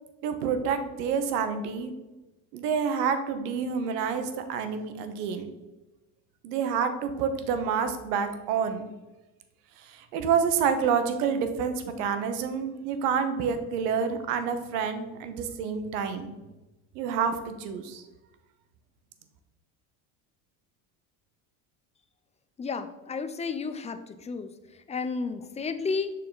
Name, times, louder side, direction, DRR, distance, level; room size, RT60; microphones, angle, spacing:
voice 1, 0.2-1.9 2.5-5.5 6.4-8.9 9.8-16.3 16.9-18.0, right 6 dB, 85° right, 8 dB, 0.9 m, -28 dB
voice 2, 22.6-26.1, left 4 dB, 15° left, 10 dB, 0.3 m, -32 dB
6.6 x 3.8 x 3.8 m, 1.1 s
supercardioid pair, 90°, 46 cm